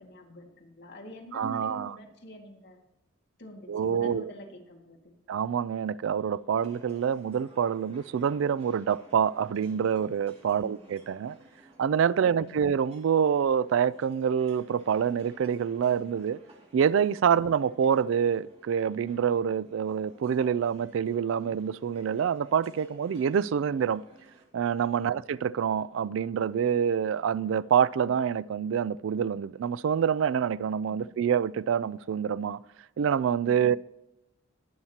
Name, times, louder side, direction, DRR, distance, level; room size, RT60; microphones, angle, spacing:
voice 1, 0.0-2.8 3.4-5.1 10.5-10.8 12.2-12.6 25.0-25.2 30.9-31.1 33.4-33.7, left 1 dB, 60° left, 2.1 m, -46 dB
voice 2, 1.3-2.0 3.7-4.3 5.3-11.4 11.8-16.4 16.7-24.0 24.5-32.6 33.0-33.8, right 7 dB, 70° right, 0.3 m, -26 dB
sound 1, 6.6-24.4, right 1 dB, 30° right, 2.4 m, -57 dB
20.5 x 7.3 x 2.9 m
head